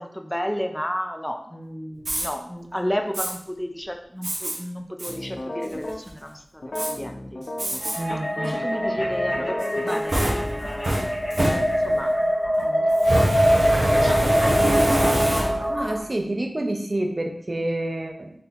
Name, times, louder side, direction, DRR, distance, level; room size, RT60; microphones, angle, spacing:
voice 1, 0.0-7.5 8.3-12.1 12.6-12.8 13.4-15.2, equal, 10° left, 4 dB, 0.5 m, -33 dB
Fire, 2.0-2.3 3.1-3.3 4.2-4.6 5.0-5.1 5.6-6.1 6.8-6.9 7.6-8.0 8.4-8.5 9.6-12.1 13.0-15.8, right 1 dB, 85° right, 1.0 m, -25 dB
sound 1, 5.1-6.0 6.6-10.0, left 1 dB, 65° left, 0.4 m, -34 dB
sound 2, 7.8-16.0, equal, 45° left, 1.1 m, -23 dB
voice 2, 7.9-8.6 15.7-18.3, right 1 dB, 40° right, 3 dB, 0.6 m, -28 dB
4.2 x 2.8 x 3.9 m, 0.67 s
wide cardioid pair, 65°, 0 cm